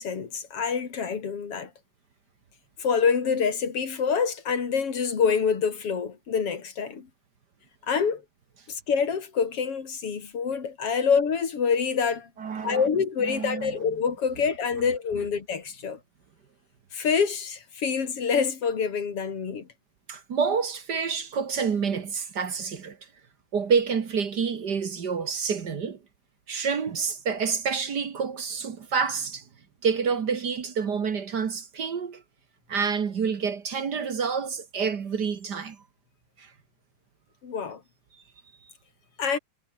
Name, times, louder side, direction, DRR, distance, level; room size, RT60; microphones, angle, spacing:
voice 1, 0.0-1.7 2.8-7.1 7.9-8.2 8.7-12.3 12.6-16.0 16.9-19.7 37.4-37.8 39.2-39.4, left 6 dB, 50° left, 3.6 m, -26 dB
voice 2, 12.4-12.9 13.2-13.7 20.1-23.0 23.5-26.0 26.5-29.4 29.8-32.2 32.7-35.8 36.4-36.5, right 6 dB, 45° right, 1.6 m, -28 dB
omnidirectional pair, 3.4 m